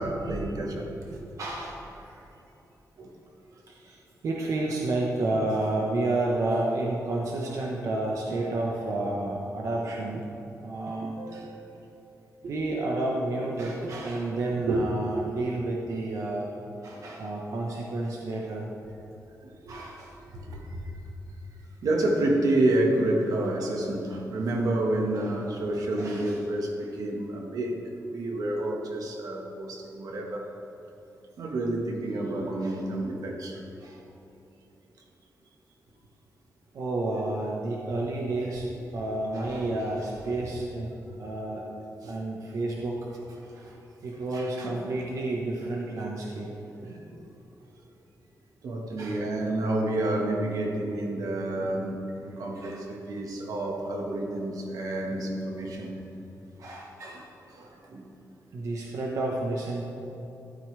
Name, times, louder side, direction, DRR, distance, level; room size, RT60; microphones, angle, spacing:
voice 1, 0.0-0.9 3.0-3.1 11.0-11.4 14.7-14.8 16.9-17.0 19.4-19.8 20.3-21.0 21.8-27.8 28.1-30.5 31.4-34.0 37.9-38.0 42.0-42.1 44.3-44.8 46.8-47.3 48.6-56.0 57.5-58.0, right 1 dB, 80° right, 1 dB, 1.6 m, -29 dB
voice 2, 1.1-2.2 3.7-10.3 10.6-11.5 12.4-16.5 16.8-18.7 19.7-20.1 25.1-25.3 26.0-26.4 36.7-41.8 42.1-43.1 43.4-43.8 44.0-46.5 49.0-49.2 52.5-52.8 56.6-57.6 58.5-59.8, right 2 dB, 60° right, -2 dB, 1.2 m, -31 dB
13.0 x 12.5 x 3.4 m, 2.9 s
wide cardioid pair, 170°, 6 cm